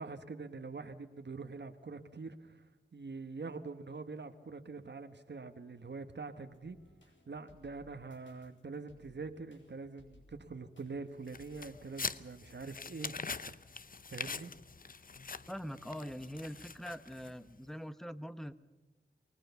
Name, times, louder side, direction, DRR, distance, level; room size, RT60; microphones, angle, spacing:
voice 1, 0.0-2.6 2.9-6.8 7.3-13.1 13.5-13.6 14.1-14.5, right 4 dB, 65° right, 8 dB, 1.3 m, -44 dB
sound 1, 6.5-12.4, left 2 dB, 75° left, 4.8 m, -64 dB
sound 2, 11.3-17.5, left 4 dB, 45° left, 0.7 m, -44 dB
voice 2, 15.5-18.5, equal, ahead, 13 dB, 1.0 m, -43 dB
24.0 x 19.5 x 7.0 m, 1.1 s
wide cardioid pair, 85°, 19 cm